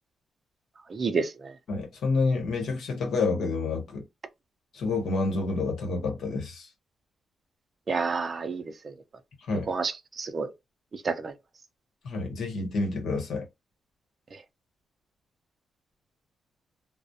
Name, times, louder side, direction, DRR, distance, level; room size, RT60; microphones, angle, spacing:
voice 1, 0.9-1.5 7.9-8.9 9.7-9.9 10.2-10.5 11.0-11.3, right 4 dB, 35° right, 0.4 m, -29 dB
voice 2, 1.7-4.0 4.7-6.7 9.5-9.7 12.0-13.5, left 3 dB, 65° left, 1.0 m, -28 dB
2.3 x 2.0 x 2.6 m
wide cardioid pair, 150°, 0 cm